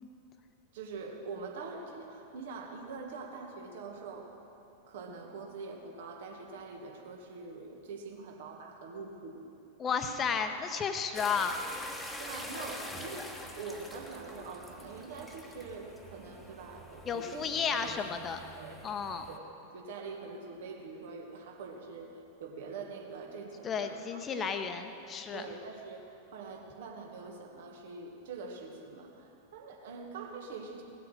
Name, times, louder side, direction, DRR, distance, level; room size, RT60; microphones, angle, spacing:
voice 1, 0.7-4.3 4.9-9.4 12.2-18.3 18.6-18.8 19.3-22.1 22.4-24.5 25.3-30.8, right 4 dB, 55° right, 1 dB, 1.8 m, -44 dB
voice 2, 9.8-11.5 17.1-18.4 18.8-19.2 23.6-25.4, left 6 dB, 25° left, 7 dB, 1.0 m, -33 dB
sound 1, 11.1-19.4, left 1 dB, 5° left, 1.3 m, -45 dB
18.0 x 8.2 x 6.4 m, 2.9 s
figure-of-eight pair, 90°, 0 cm